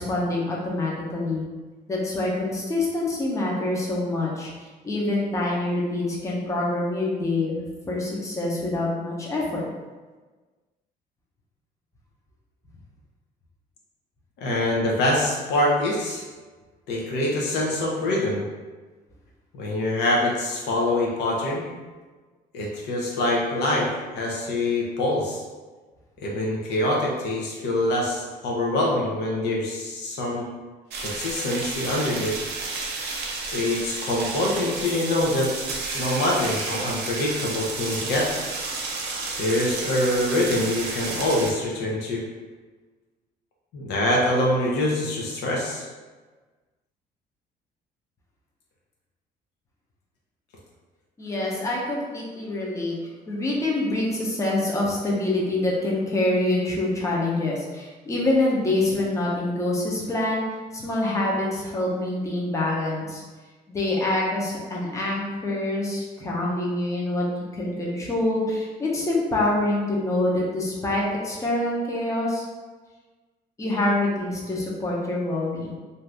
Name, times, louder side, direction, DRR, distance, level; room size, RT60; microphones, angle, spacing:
voice 1, 0.0-1.4 1.9-9.6 51.2-52.9 53.3-60.5 60.7-63.2 63.7-67.3 67.5-72.5 73.6-75.7, left 2 dB, 20° left, -4 dB, 0.7 m, -26 dB
voice 2, 14.4-16.2 16.9-18.4 19.5-21.7 22.5-25.4 26.2-30.5 31.0-32.3 33.5-35.5 35.9-38.3 39.4-42.2 43.7-45.9, left 1 dB, 80° left, -2 dB, 0.8 m, -24 dB
sound 1, 30.9-41.5, right 3 dB, 75° right, 0.6 m, -31 dB
2.7 x 2.5 x 3.3 m, 1.3 s
cardioid pair, 110°, 17 cm